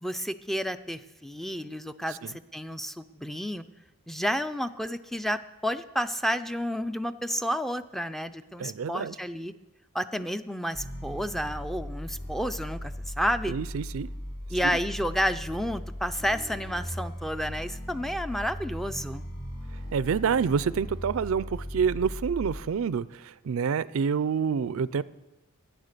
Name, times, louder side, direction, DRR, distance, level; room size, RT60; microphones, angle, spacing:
voice 1, 0.0-3.6 4.1-9.5 9.9-13.5 14.5-19.2, equal, ahead, 11 dB, 0.3 m, -31 dB
voice 2, 8.6-9.2 13.5-14.1 14.6-14.8 19.9-25.0, right 6 dB, 70° right, 19 dB, 0.4 m, -28 dB
sound 1, 10.7-22.6, equal, 50° left, 6.1 m, -38 dB
13.5 x 9.6 x 6.7 m, 1.0 s
head